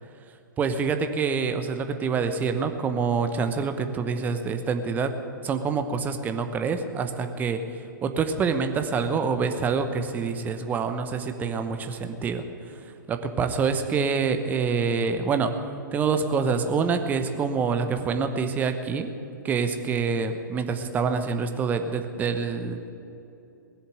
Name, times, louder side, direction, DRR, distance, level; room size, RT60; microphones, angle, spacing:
voice 1, 0.6-5.1 5.4-12.5 12.7-15.5 15.9-19.1 19.4-22.9, right 5 dB, 15° right, 8 dB, 1.0 m, -26 dB
19.5 x 7.1 x 9.5 m, 2.8 s
figure-of-eight pair, 115°, 11 cm